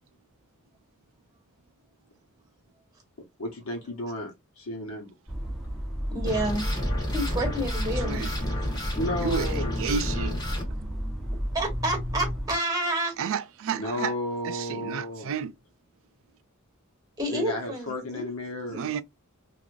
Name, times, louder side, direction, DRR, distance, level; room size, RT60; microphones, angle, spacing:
voice 1, 3.4-5.1 9.0-9.8 13.7-15.3 17.3-18.9, left 1 dB, 80° left, 0.9 m, -33 dB
sound 1, 5.3-12.5, equal, ahead, 0.9 m, -32 dB
voice 2, 6.1-6.6 7.1-8.3 11.5-13.1 17.2-18.3, right 1 dB, 15° right, 1.3 m, -29 dB
sound 2, 6.3-10.6, left 1 dB, 20° left, 1.2 m, -32 dB
voice 3, 8.0-8.6 9.2-10.4 13.2-14.1 14.4-15.5 18.7-19.0, right 6 dB, 65° right, 0.4 m, -31 dB
3.1 x 2.5 x 2.5 m
head